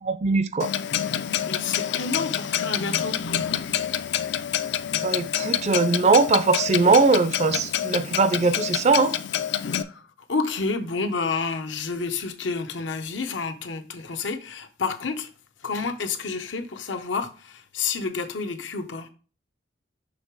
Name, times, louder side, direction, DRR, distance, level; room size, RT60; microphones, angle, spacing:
voice 1, 0.0-0.7 5.0-9.1, right 4 dB, 35° right, 0.4 m, -20 dB
Clock, 0.6-9.8, left 10 dB, 65° left, 0.4 m, -27 dB
voice 2, 1.5-3.2 9.6-10.0 10.3-15.3 15.6-19.1, left 4 dB, 85° left, 0.8 m, -29 dB
6.4 x 3.3 x 4.6 m
head